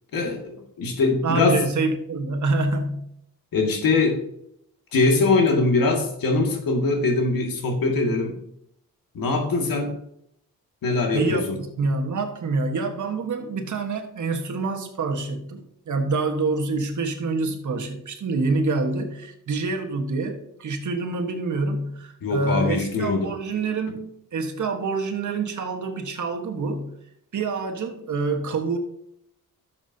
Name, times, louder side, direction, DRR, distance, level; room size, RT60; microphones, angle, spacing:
voice 1, 0.1-1.6 3.5-4.2 4.9-8.4 9.1-10.0 10.8-11.5 22.2-23.3, left 3 dB, 70° left, 2 dB, 2.2 m, -22 dB
voice 2, 1.2-3.1 11.1-26.9 27.3-28.8, right 3 dB, 55° right, 5 dB, 1.5 m, -26 dB
12.0 x 7.1 x 2.8 m, 0.74 s
cardioid pair, 90°, 35 cm